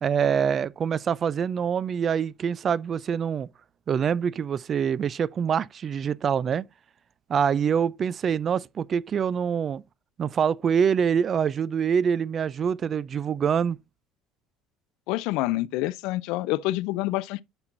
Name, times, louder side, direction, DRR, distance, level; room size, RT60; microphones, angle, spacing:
voice 1, 0.0-3.5 3.9-6.7 7.3-9.8 10.2-13.8, right 7 dB, 25° right, 0.3 m, -25 dB
voice 2, 15.1-17.4, left 17 dB, 65° left, 0.4 m, -27 dB
9.6 x 6.0 x 2.5 m
cardioid pair, 165°, 0 cm